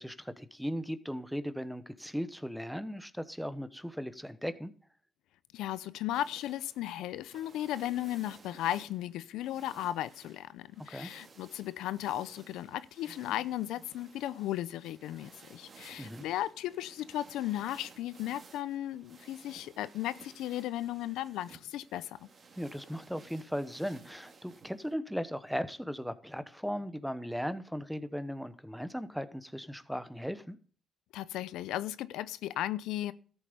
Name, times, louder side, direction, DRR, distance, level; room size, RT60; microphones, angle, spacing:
voice 1, 0.0-4.7 10.9-11.1 16.0-16.2 22.6-30.6, equal, ahead, 1.0 m, -37 dB
voice 2, 5.5-22.3 31.1-33.1, left 13 dB, 90° left, 0.6 m, -36 dB
sound 1, 6.1-24.9, right 4 dB, 45° right, 2.4 m, -57 dB
13.5 x 8.0 x 5.2 m
cardioid pair, 90°, 0 cm